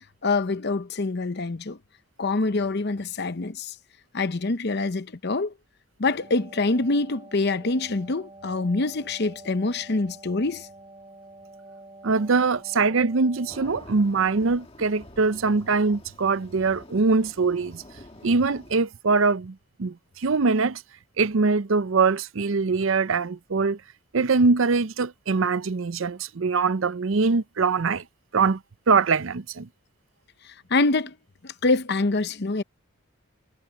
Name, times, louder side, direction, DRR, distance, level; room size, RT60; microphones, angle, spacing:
voice 1, 0.2-1.8 2.2-3.7 4.1-5.5 6.0-10.7 30.4-31.2 31.4-32.6, left 3 dB, 50° left, 0.8 m, -25 dB
Wind instrument woodwind instrument, 6.0-14.0, right 2 dB, 20° right, 7.4 m, -48 dB
voice 2, 12.0-17.8 18.2-20.8 21.2-23.8 24.1-28.0 28.3-28.6 28.9-29.7, right 4 dB, 65° right, 0.6 m, -23 dB
sound 1, 13.5-18.8, left 1 dB, 25° left, 1.6 m, -47 dB
head